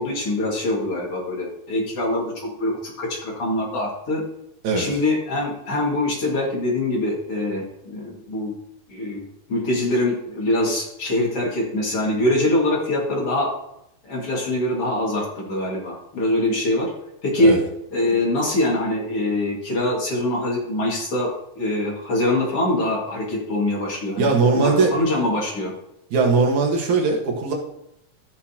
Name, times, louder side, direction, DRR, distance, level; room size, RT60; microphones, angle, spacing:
voice 1, 0.0-4.2 4.8-8.5 8.9-9.2 9.5-13.5 14.0-16.9 17.2-17.5 17.9-21.3 21.6-25.7, left 1 dB, 50° left, -2 dB, 2.9 m, -23 dB
voice 2, 24.2-24.9 26.1-27.5, right 4 dB, 70° right, 0 dB, 2.9 m, -19 dB
15.5 x 6.1 x 2.9 m, 0.80 s
omnidirectional pair, 3.6 m